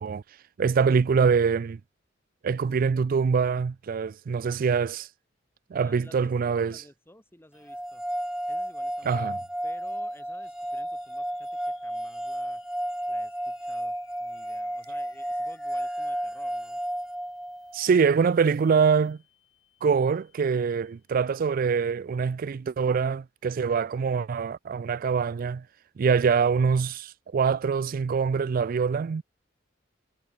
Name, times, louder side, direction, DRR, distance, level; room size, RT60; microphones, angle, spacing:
voice 1, 0.6-1.8 2.4-5.1 5.7-6.8 9.1-9.4 17.7-19.2 19.8-25.6 26.0-29.2, right 5 dB, 50° right, 0.4 m, -24 dB
voice 2, 5.7-8.0 8.5-9.4 9.6-12.6 13.1-16.8, left 1 dB, 10° left, 3.3 m, -54 dB
sound 1, 7.7-17.8, right 1 dB, 5° right, 0.8 m, -32 dB
sound 2, 9.8-21.3, left 9 dB, 90° left, 6.9 m, -63 dB
head